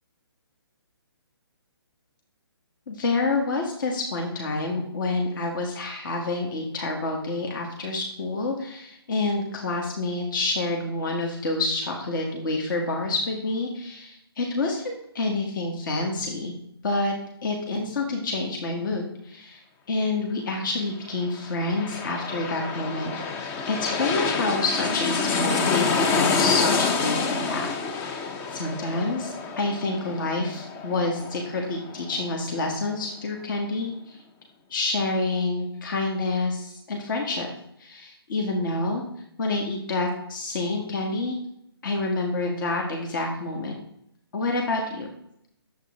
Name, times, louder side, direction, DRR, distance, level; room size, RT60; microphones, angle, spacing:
voice 1, 2.9-16.5 16.8-17.1 17.4-19.6 19.9-23.1 23.6-34.2 34.7-37.5 37.8-39.0 39.4-41.4 41.8-43.7 44.3-45.1, left 2 dB, 50° left, 1 dB, 1.8 m, -28 dB
sound 1, 21.3-32.6 33.0-33.1, left 5 dB, 15° left, 0.5 m, -27 dB
9.8 x 7.6 x 3.7 m, 0.75 s
hypercardioid pair, 145°, 13 cm